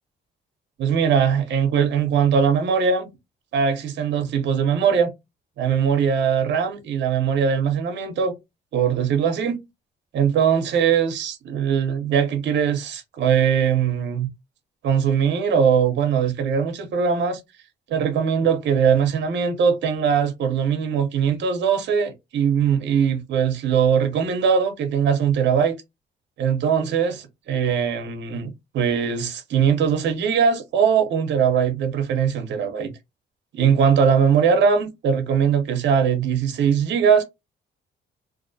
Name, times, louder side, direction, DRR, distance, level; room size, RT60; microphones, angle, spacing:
voice 1, 0.8-3.1 3.5-5.1 5.6-8.3 8.7-9.6 10.1-14.3 14.8-17.4 17.9-25.8 26.4-32.9 33.5-37.2, right 7 dB, 65° right, 0.6 m, -21 dB
2.4 x 2.0 x 2.6 m
cardioid pair, 90°, 20 cm